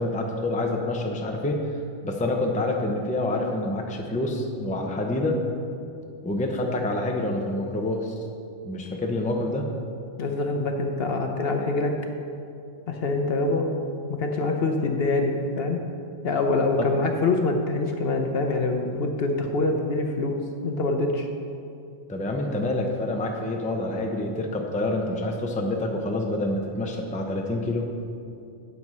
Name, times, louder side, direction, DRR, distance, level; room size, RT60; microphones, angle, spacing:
voice 1, 0.0-1.6 2.0-5.4 6.2-8.1 8.6-9.7 16.8-17.0 22.1-27.9, left 1 dB, 10° left, 2 dB, 0.6 m, -27 dB
voice 2, 10.2-12.0 12.9-13.7 14.1-15.8 16.2-21.3, left 3 dB, 55° left, 3 dB, 0.9 m, -25 dB
7.8 x 7.8 x 5.4 m, 2.5 s
omnidirectional pair, 1.3 m